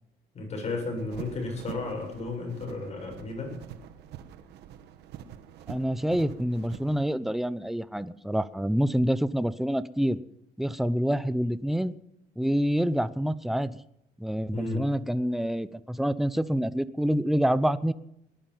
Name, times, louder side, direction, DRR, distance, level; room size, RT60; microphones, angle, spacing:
voice 1, 0.3-3.6 14.5-14.8, left 3 dB, 40° left, 2 dB, 7.4 m, -33 dB
Rubbing against clothing, 1.0-7.1, right 10 dB, 80° right, 1.4 m, -45 dB
voice 2, 5.7-10.2 10.6-11.9 12.4-13.7 14.2-17.9, equal, ahead, 15 dB, 0.7 m, -27 dB
19.5 x 11.0 x 5.7 m, 0.77 s
cardioid pair, 110°, 17 cm